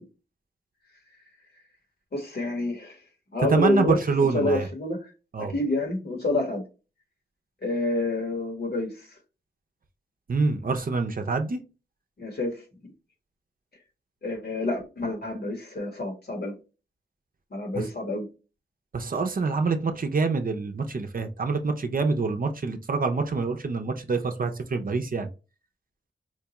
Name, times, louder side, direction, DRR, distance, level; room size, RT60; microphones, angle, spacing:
voice 1, 2.1-2.9 3.3-4.0 4.3-5.1 5.4-6.6 7.6-9.0 12.2-12.5 14.2-16.6 17.5-18.3, left 2 dB, 60° left, 1.3 m, -28 dB
voice 2, 3.5-4.7 5.3-5.5 10.3-11.6 17.8-17.9 18.9-25.3, right 4 dB, 50° right, 0.6 m, -26 dB
4.5 x 2.3 x 2.9 m
cardioid pair, 60°, 19 cm